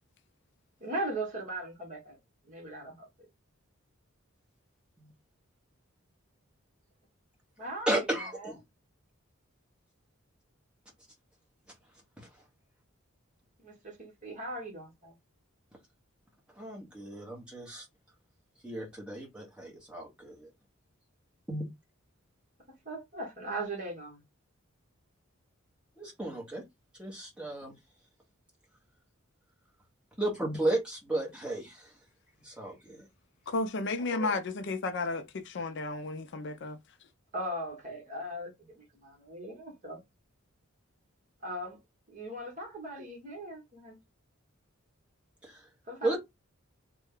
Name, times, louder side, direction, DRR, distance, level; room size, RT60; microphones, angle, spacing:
voice 1, 0.8-2.2 2.5-3.3 7.6-8.5 13.6-15.1 22.8-24.2 34.0-34.4 37.3-40.0 41.4-41.8 42.1-44.0 45.9-46.2, right 1 dB, 35° right, 1.2 m, -39 dB
voice 2, 7.9-8.6 16.6-17.9 18.6-20.5 21.5-21.6 26.0-26.6 27.0-27.7 30.2-31.9 32.4-33.1 45.4-45.6 46.0-46.2, right 1 dB, 5° right, 1.0 m, -34 dB
voice 3, 33.5-36.8, left 3 dB, 55° left, 0.4 m, -33 dB
3.2 x 2.2 x 3.6 m
head